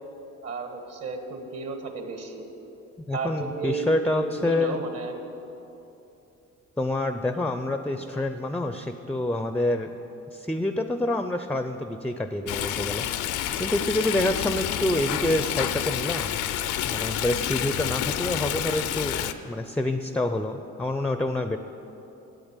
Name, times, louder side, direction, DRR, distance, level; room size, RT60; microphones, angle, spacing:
voice 1, 0.4-2.4 3.1-3.9 4.1-5.1 7.3-7.5, right 4 dB, 55° right, 5 dB, 1.5 m, -33 dB
voice 2, 3.1-4.8 6.8-9.9 10.3-13.1 13.6-16.4 16.8-21.6, left 1 dB, 5° left, 8 dB, 0.4 m, -27 dB
Stream, 12.5-19.3, left 11 dB, 85° left, 0.5 m, -29 dB
8.9 x 8.1 x 8.1 m, 3.0 s
cardioid pair, 90°, 30 cm